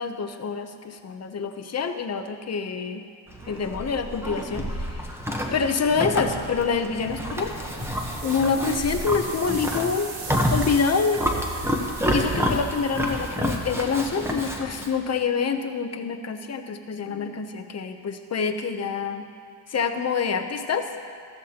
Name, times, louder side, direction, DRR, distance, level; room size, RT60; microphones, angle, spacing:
voice 1, 0.0-3.0 3.5-5.0 5.5-7.5 8.2-10.1 10.5-11.8 12.1-19.2 19.7-20.9, left 5 dB, 35° left, 7 dB, 0.7 m, -26 dB
Livestock farm animals working animals, 3.3-14.9, equal, 5° right, 1.0 m, -29 dB
Thunder, 5.7-13.4, right 3 dB, 60° right, 1.9 m, -48 dB
sound 1, 7.4-14.5, right 4 dB, 85° right, 1.9 m, -40 dB
14.0 x 14.0 x 2.9 m, 2.2 s
cardioid pair, 130°, 46 cm